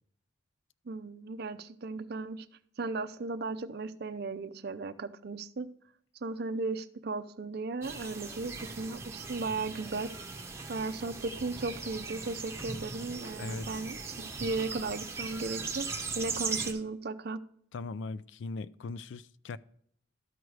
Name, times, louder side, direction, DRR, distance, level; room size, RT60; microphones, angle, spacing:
voice 1, 0.9-2.5 2.8-5.7 6.2-10.1 10.7-15.9 16.2-17.4, right 3 dB, 50° right, 0.5 m, -36 dB
sound 1, 7.8-16.7, right 4 dB, 15° right, 0.9 m, -39 dB
voice 2, 17.7-19.6, left 3 dB, 60° left, 0.3 m, -39 dB
12.5 x 4.7 x 4.7 m
head